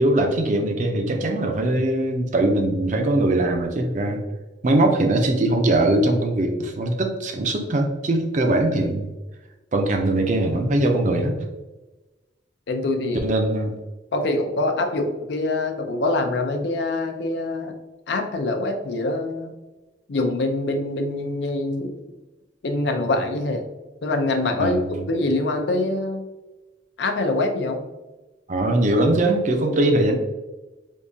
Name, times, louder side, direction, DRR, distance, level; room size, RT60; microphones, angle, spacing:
voice 1, 0.0-4.2 4.6-9.1 9.7-11.4 13.2-13.8 24.6-24.9 28.5-30.2, right 1 dB, 40° right, 4 dB, 0.5 m, -21 dB
voice 2, 12.7-13.3 14.1-17.7 18.1-19.5 20.1-21.9 22.6-23.7 24.0-24.8 25.1-26.3 27.0-27.9, left 2 dB, 65° left, 5 dB, 0.5 m, -24 dB
3.6 x 2.7 x 2.6 m, 1.1 s
head